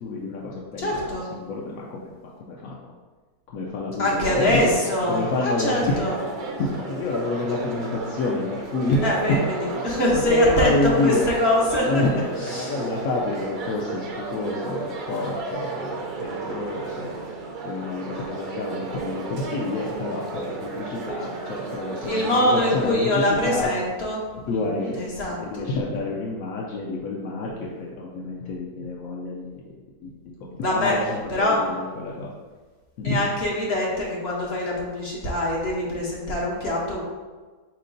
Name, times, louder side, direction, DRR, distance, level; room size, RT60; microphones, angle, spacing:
voice 1, 0.0-2.8 3.5-4.7 5.1-9.0 9.3-11.3 11.8-17.2 17.6-23.7 24.5-27.5 27.8-29.6 30.0-32.3 33.0-33.2, left 3 dB, 70° left, -3 dB, 1.0 m, -28 dB
voice 2, 0.8-1.3 4.0-6.2 9.0-12.0 12.5-12.8 22.1-25.7 30.6-31.0 31.3-31.6 33.0-37.0, left 1 dB, 50° left, -3 dB, 0.9 m, -24 dB
sound 1, 4.1-22.9, right 4 dB, 75° right, 0.4 m, -33 dB
4.4 x 3.0 x 3.8 m, 1.4 s
omnidirectional pair, 1.6 m